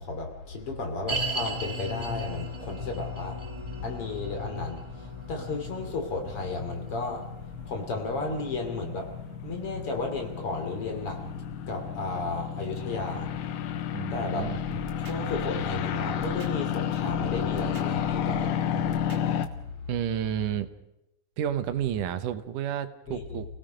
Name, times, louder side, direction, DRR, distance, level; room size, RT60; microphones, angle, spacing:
voice 1, 0.0-14.5 15.0-19.9 23.1-23.4, left 3 dB, 45° left, 3 dB, 3.6 m, -34 dB
sound 1, 1.1-12.4 12.6-12.7 13.4-13.5, equal, 25° right, 0.6 m, -38 dB
sound 2, 4.8-19.5, left 9 dB, 80° left, 2.4 m, -32 dB
voice 2, 13.9-14.6 19.9-20.7 21.4-23.5, right 10 dB, 90° right, 11 dB, 2.6 m, -31 dB
sound 3, 14.4-16.8 17.1-19.5, right 4 dB, 50° right, 2.8 m, -42 dB
30.0 x 17.5 x 5.2 m, 0.87 s
omnidirectional pair, 3.6 m